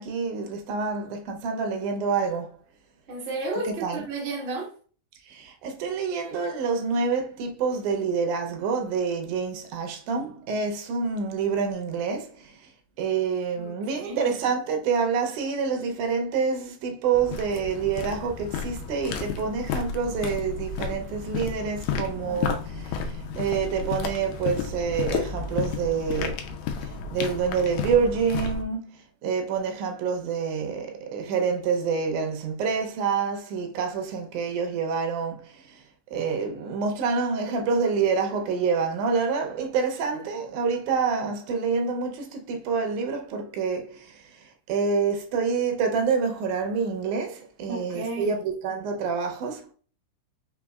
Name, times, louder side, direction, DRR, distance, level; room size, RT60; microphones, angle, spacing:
voice 1, 0.0-2.5 3.7-4.0 5.3-12.5 13.0-23.1 23.4-26.4 27.1-29.0 29.2-35.5 36.1-44.2 44.7-49.7, right 5 dB, 85° right, 2.2 m, -27 dB
voice 2, 3.1-4.7 13.6-14.3 21.9-22.5 47.7-48.4, right 2 dB, 55° right, 0.7 m, -33 dB
sound 1, 17.1-28.6, left 5 dB, 80° left, 1.9 m, -32 dB
5.1 x 3.5 x 2.3 m
omnidirectional pair, 3.4 m